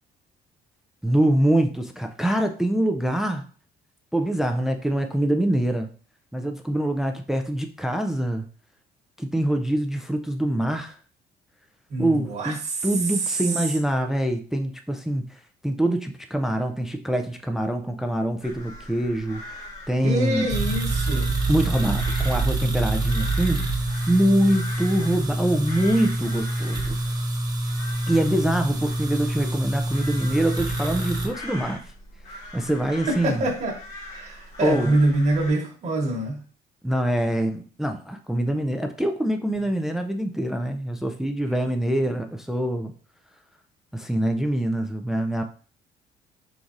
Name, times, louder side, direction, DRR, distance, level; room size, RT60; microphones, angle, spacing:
voice 1, 1.0-3.4 4.1-5.9 6.3-8.5 9.2-11.0 12.0-12.6 12.8-20.5 21.5-23.7 24.1-27.0 28.1-31.9 32.5-33.4 34.6-34.9 36.8-42.9 43.9-45.4, right 1 dB, ahead, 6 dB, 0.4 m, -24 dB
voice 2, 11.9-13.4 20.0-21.3 33.0-33.7 34.1-36.4, right 2 dB, 45° right, -2 dB, 1.3 m, -25 dB
sound 1, 18.4-35.5, left 2 dB, 45° left, 1.7 m, -41 dB
sound 2, 20.5-31.3, right 2 dB, 25° right, 1.1 m, -26 dB
4.5 x 3.9 x 2.6 m, 0.41 s
cardioid pair, 110°, 17 cm